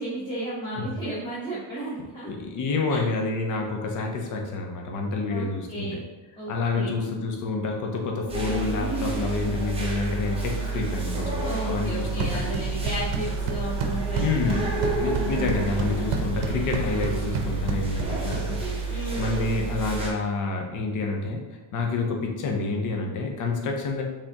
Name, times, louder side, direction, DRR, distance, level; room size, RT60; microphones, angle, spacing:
voice 1, 0.0-2.3 2.9-3.1 5.3-6.0 6.4-6.9 11.4-14.3 14.5-15.6 18.9-19.5, right 1 dB, 10° left, -12 dB, 1.0 m, -34 dB
voice 2, 2.0-6.0 6.5-12.4 14.2-14.7 15.0-18.6 18.9-21.4 21.7-24.0, left 3 dB, 40° left, 1 dB, 0.7 m, -28 dB
sound 1, 8.3-20.1, right 3 dB, 10° right, 0.6 m, -30 dB
sound 2, 12.0-19.0, right 4 dB, 65° right, 0.7 m, -32 dB
5.0 x 3.5 x 2.9 m, 1.1 s
cardioid pair, 170°, 49 cm